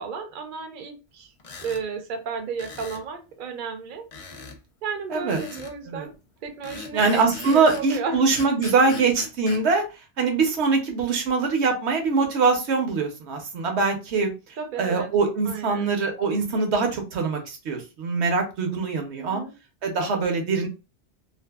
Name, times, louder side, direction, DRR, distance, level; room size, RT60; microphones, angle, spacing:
voice 1, 0.0-1.3 1.6-4.1 4.8-6.1 6.4-8.2 8.9-9.1 14.6-15.1 15.5-15.9 19.2-19.5, right 5 dB, 55° right, 5 dB, 0.6 m, -33 dB
sound 1, 1.4-1.8 2.6-3.1 4.1-4.6 5.3-5.8 6.6-7.9 8.3-9.6, left 4 dB, 60° left, 0.3 m, -39 dB
voice 2, 6.9-9.8 10.2-14.3 14.8-19.4 19.8-20.7, right 4 dB, 70° right, 3 dB, 0.9 m, -23 dB
2.6 x 2.4 x 2.3 m, 0.29 s
omnidirectional pair, 1.2 m